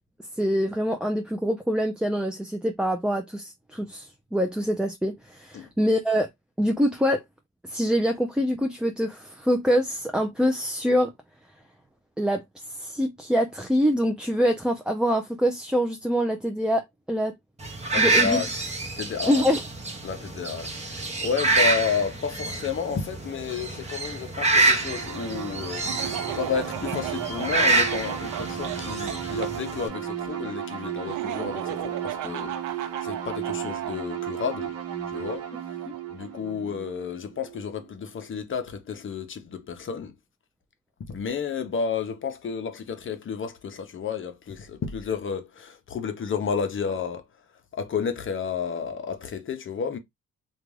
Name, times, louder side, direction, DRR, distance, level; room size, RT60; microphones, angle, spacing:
voice 1, 0.4-6.3 6.6-7.2 7.6-11.1 12.2-12.4 12.7-16.8 17.1-17.3 18.0-18.4 19.3-19.6, equal, 5° right, 0.3 m, -25 dB
sound 1, 17.6-29.9, right 3 dB, 20° right, 0.8 m, -27 dB
voice 2, 17.9-19.5 20.0-34.8 35.1-35.5 36.1-40.2 41.1-47.3 47.7-50.0, left 6 dB, 40° left, 0.6 m, -31 dB
sound 2, 24.4-37.9, right 10 dB, 55° right, 0.8 m, -35 dB
Laughter, 25.8-29.5 31.0-34.0, right 12 dB, 85° right, 0.5 m, -35 dB
2.4 x 2.3 x 3.1 m
cardioid pair, 90°, 30 cm